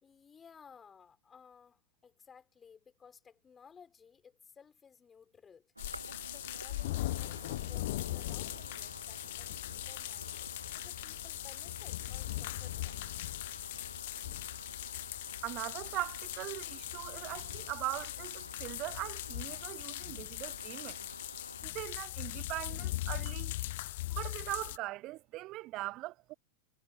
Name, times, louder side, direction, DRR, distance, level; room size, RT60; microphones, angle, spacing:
voice 1, 0.0-5.7 6.1-13.1, left 6 dB, 20° left, 4.5 m, -58 dB
sound 1, 5.8-24.8, left 17 dB, 55° left, 0.3 m, -40 dB
sound 2, 5.8-21.7, right 2 dB, 85° right, 1.0 m, -51 dB
voice 2, 15.4-21.1 21.6-23.5 24.1-26.3, right 18 dB, 40° right, 0.5 m, -40 dB
figure-of-eight pair, 90°, 0 cm